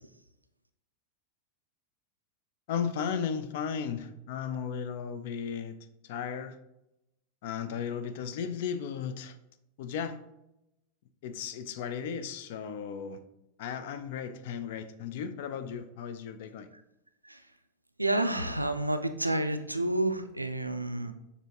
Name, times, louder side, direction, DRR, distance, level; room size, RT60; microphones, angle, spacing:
voice 1, 2.7-5.8 6.0-6.6 7.4-9.4 9.8-10.2 11.2-13.2 13.6-16.7, left 7 dB, 50° left, 0.4 m, -35 dB
voice 2, 18.0-21.1, right 1 dB, 85° right, 0.3 m, -29 dB
6.7 x 2.7 x 2.8 m
figure-of-eight pair, 90°, 0 cm